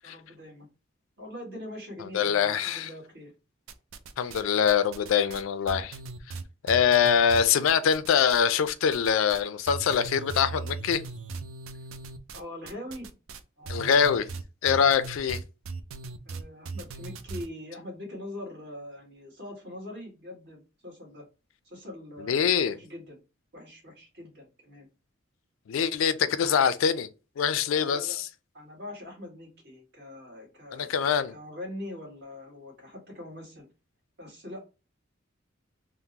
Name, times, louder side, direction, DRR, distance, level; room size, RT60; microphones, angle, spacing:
voice 1, 0.0-0.7 1.2-3.3 12.3-13.1 13.6-14.0 16.2-21.2 21.6-23.2 23.5-24.9 27.7-28.2 28.5-33.7 34.2-34.6, left 1 dB, 55° right, 1.5 m, -42 dB
voice 2, 2.1-2.9 4.2-6.0 6.6-11.0 13.7-14.2 14.6-15.4 22.2-22.8 25.7-27.1 27.4-28.3 30.7-31.3, left 7 dB, 75° left, 0.4 m, -24 dB
sound 1, 3.7-4.4 4.7-8.4 8.7-9.4 9.7-17.5, right 4 dB, 80° right, 0.4 m, -38 dB
3.6 x 2.0 x 2.8 m
head